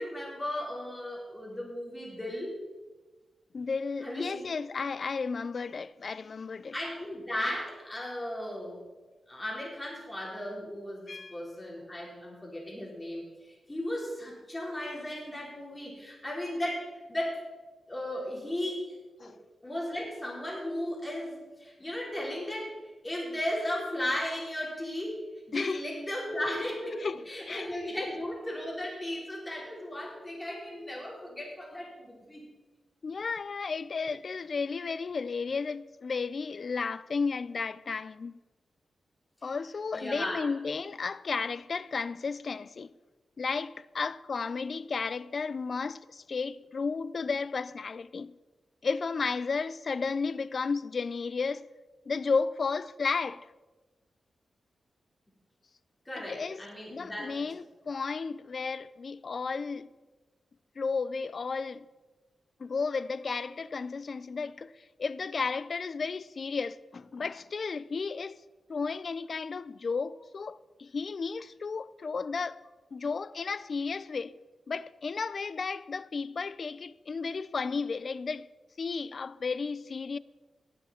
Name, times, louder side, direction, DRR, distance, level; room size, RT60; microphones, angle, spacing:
voice 1, 0.0-2.6 4.0-4.6 6.7-8.8 9.3-17.4 17.9-19.3 19.6-22.8 23.0-32.4 39.9-40.4 56.1-57.4, left 1 dB, 20° left, 4.4 m, -36 dB
voice 2, 3.5-6.7 11.1-11.4 19.2-19.4 25.5-25.8 27.0-27.7 28.0-28.1 33.0-38.4 39.4-42.9 43.4-48.4 48.8-51.7 52.1-53.5 56.2-56.6 56.9-59.9 60.8-61.8 62.6-68.4 68.7-72.6 72.9-74.4 74.7-78.5 78.8-80.2, left 4 dB, 55° left, 0.4 m, -33 dB
18.5 x 7.9 x 4.4 m
cardioid pair, 85°, 0 cm